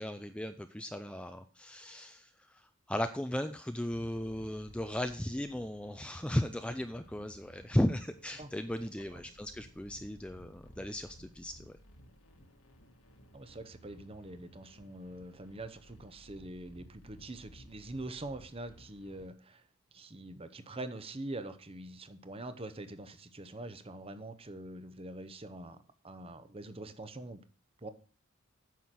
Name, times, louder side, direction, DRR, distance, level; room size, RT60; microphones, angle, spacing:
voice 1, 0.0-11.8, left 1 dB, 5° left, 8 dB, 0.4 m, -36 dB
sound 1, 3.9-19.3, equal, 70° left, 1.8 m, -57 dB
voice 2, 13.3-19.6 19.9-25.8 26.0-27.4 27.8-27.9, right 2 dB, 25° right, 11 dB, 0.8 m, -44 dB
9.4 x 6.5 x 5.8 m, 0.40 s
head